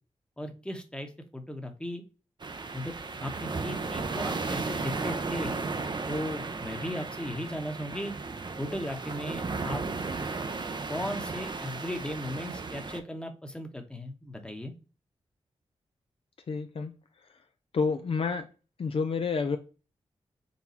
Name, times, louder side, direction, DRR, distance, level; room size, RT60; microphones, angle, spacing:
voice 1, 0.4-2.0 2.7-2.9 3.2-5.6 6.1-8.1 8.6-9.8 10.9-14.7, left 1 dB, 10° left, 1.0 m, -36 dB
sound 1, 2.4-13.0, right 4 dB, 40° right, 0.6 m, -35 dB
voice 2, 16.5-16.9 17.7-18.5 18.8-19.6, left 5 dB, 55° left, 0.4 m, -29 dB
4.1 x 2.2 x 4.2 m
cardioid pair, 45°, 11 cm